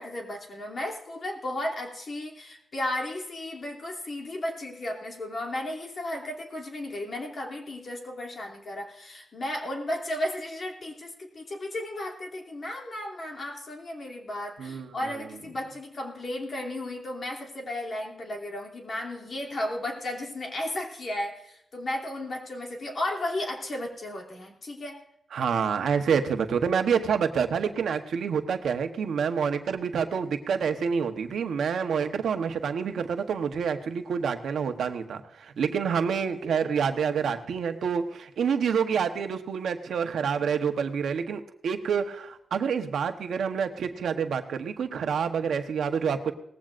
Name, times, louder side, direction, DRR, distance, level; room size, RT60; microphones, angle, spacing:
voice 1, 0.0-25.0, left 1 dB, 45° left, 1 dB, 2.8 m, -34 dB
voice 2, 14.6-14.9 25.3-46.3, right 6 dB, 85° right, 6 dB, 1.0 m, -27 dB
18.5 x 15.0 x 2.5 m, 0.78 s
wide cardioid pair, 110°, 0 cm